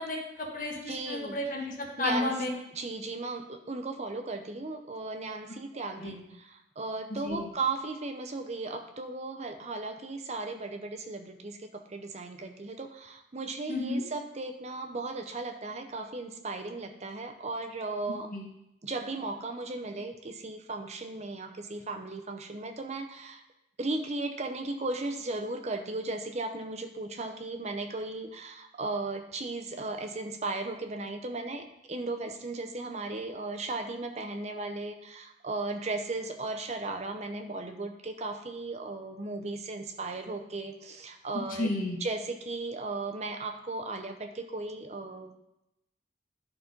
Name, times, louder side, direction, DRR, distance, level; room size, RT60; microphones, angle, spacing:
voice 1, 0.0-2.5 6.0-6.1 7.1-7.5 13.7-14.0 18.3-18.5 41.6-42.0, left 2 dB, 50° left, -2 dB, 1.5 m, -32 dB
voice 2, 0.9-1.4 2.0-2.3 2.7-18.3 18.8-23.4 23.8-41.7 42.0-45.3, right 3 dB, 40° right, 6 dB, 0.7 m, -36 dB
11.5 x 4.2 x 5.1 m, 0.86 s
head